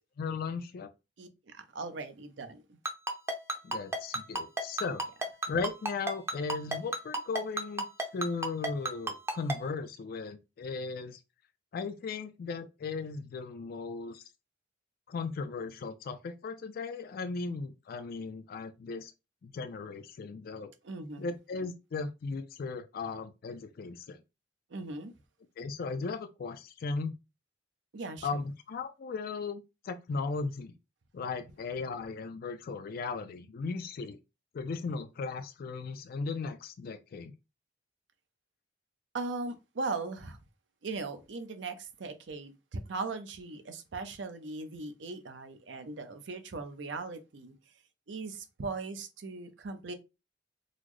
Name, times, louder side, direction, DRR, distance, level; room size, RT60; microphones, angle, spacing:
voice 1, 0.2-0.9 3.6-5.0 5.5-7.9 8.1-11.2 11.7-14.2 15.1-19.1 19.4-20.7 21.2-24.2 25.6-27.2 28.2-30.8 31.1-34.2 34.5-37.3, left 4 dB, 55° left, 0.3 m, -37 dB
voice 2, 1.2-2.8 20.8-21.3 24.7-25.1 27.9-28.4 39.1-40.4 40.8-47.5 48.1-49.9, right 3 dB, 80° right, 0.6 m, -39 dB
Ringtone, 2.9-9.6, right 2 dB, 15° right, 0.5 m, -31 dB
3.9 x 2.0 x 3.0 m
head